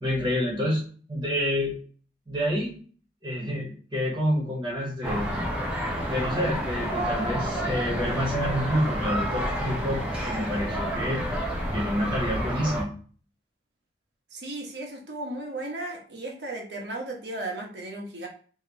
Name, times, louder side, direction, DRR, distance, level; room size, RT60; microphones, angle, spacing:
voice 1, 0.0-0.8 1.1-1.8 2.3-2.8 3.2-5.3 6.0-11.2 11.7-12.9, equal, 25° right, -4 dB, 1.1 m, -28 dB
sound 1, 5.0-12.8, equal, 5° right, 0.8 m, -29 dB
voice 2, 14.3-18.3, right 2 dB, 80° right, 0 dB, 1.1 m, -35 dB
3.0 x 2.9 x 4.0 m, 0.43 s
head